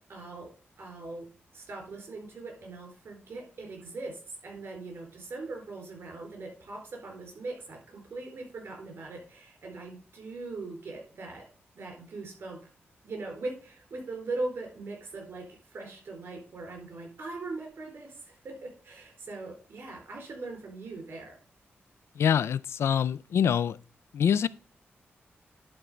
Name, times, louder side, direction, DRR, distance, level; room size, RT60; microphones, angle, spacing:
voice 1, 0.1-0.5 0.8-1.3 1.5-11.4 11.7-12.6 13.0-21.4, right 3 dB, 65° right, 4.2 m, -40 dB
voice 2, 22.2-23.8 24.1-24.5, left 8 dB, 85° left, 0.4 m, -25 dB
11.0 x 4.4 x 5.0 m
cardioid pair, 90°, 4 cm